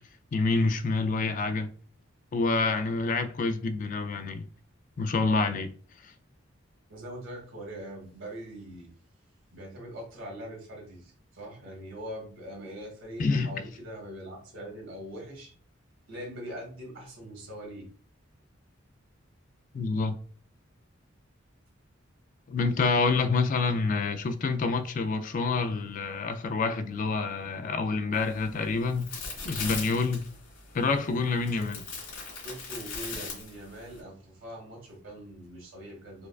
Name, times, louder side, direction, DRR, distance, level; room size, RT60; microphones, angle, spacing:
voice 1, 0.3-1.7 2.3-4.4 5.0-5.7 6.0-6.1 13.2-13.6 19.7-20.2 22.5-29.1 29.4-30.3 30.7-31.8, left 3 dB, 40° left, 0.3 m, -27 dB
voice 2, 6.9-8.9 9.5-15.5 16.1-17.9 31.6-31.7 32.4-36.3, equal, 85° right, 1.5 m, -42 dB
sound 1, 28.1-34.0, left 4 dB, 70° left, 1.5 m, -40 dB
4.5 x 2.3 x 2.3 m
head